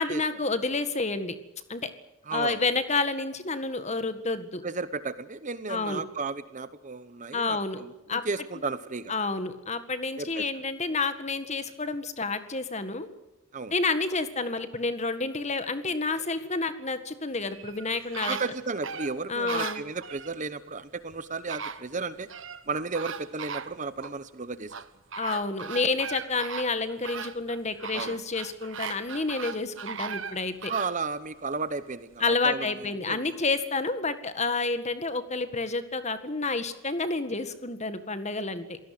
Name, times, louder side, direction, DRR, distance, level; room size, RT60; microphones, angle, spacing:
voice 1, 0.0-1.4 1.7-1.9 2.3-4.6 5.7-6.0 7.3-7.8 8.1-8.2 9.1-13.1 13.7-18.4 19.3-19.8 25.2-30.7 32.2-38.8, left 3 dB, 30° left, 10 dB, 1.8 m, -29 dB
voice 2, 2.3-2.6 4.6-9.1 10.2-10.5 13.5-13.7 18.3-22.3 22.7-24.7 27.9-28.2 30.7-33.3, right 4 dB, 35° right, 14 dB, 0.9 m, -34 dB
sound 1, 17.5-20.3 21.1-21.2 21.5-22.6 22.9-24.2 24.7-31.0 31.4-31.5, right 6 dB, 60° right, 1.3 m, -38 dB
27.0 x 18.0 x 7.8 m, 0.99 s
head